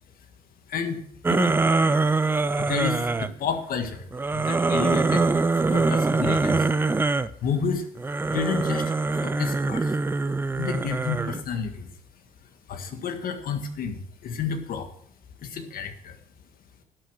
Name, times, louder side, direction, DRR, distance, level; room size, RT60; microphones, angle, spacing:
voice 1, 0.7-1.0 1.3-1.6 2.6-6.7 7.4-7.9 8.3-9.9 10.5-11.9 12.7-14.9 15.4-16.2, left 6 dB, 60° left, 7 dB, 1.7 m, -30 dB
sound 1, 1.2-3.3 4.1-7.3 8.0-11.4, right 3 dB, 15° right, 0.4 m, -23 dB
11.5 x 6.6 x 6.2 m, 0.65 s
cardioid pair, 110°, 17 cm